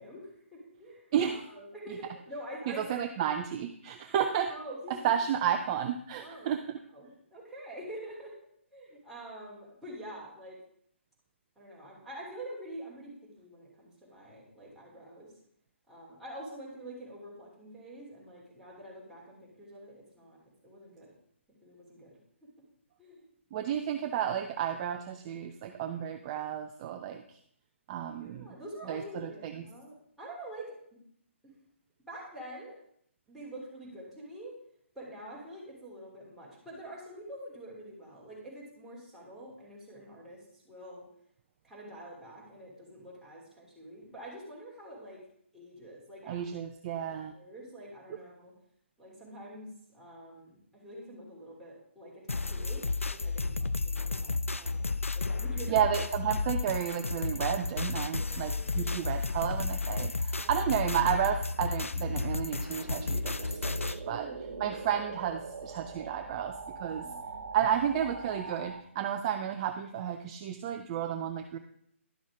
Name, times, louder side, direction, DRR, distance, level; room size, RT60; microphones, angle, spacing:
voice 1, 0.0-3.0 4.5-5.1 6.2-6.5 6.9-8.3 8.7-10.6 11.5-15.3 15.9-20.4 20.6-21.1 21.6-22.5 23.0-23.2 28.2-30.7 31.4-31.5 32.1-32.8 33.3-34.5 34.9-41.0 41.6-45.2 45.5-46.4 47.0-48.5 49.0-52.8 53.1-55.8 58.2-59.2 60.4-60.7 64.1-64.8 67.0-67.5, right 1 dB, ahead, -8 dB, 3.3 m, -46 dB
voice 2, 2.7-4.5 5.0-6.6 23.5-27.4 27.9-28.5 28.9-29.6 46.3-47.3 55.7-64.3 64.6-67.1 67.5-71.6, right 9 dB, 30° right, 6 dB, 0.5 m, -32 dB
sound 1, 52.3-64.0, left 3 dB, 85° left, 0.4 m, -32 dB
sound 2, 60.4-68.8, right 4 dB, 55° right, 1.4 m, -43 dB
11.5 x 6.2 x 5.0 m, 0.67 s
figure-of-eight pair, 135°, 7 cm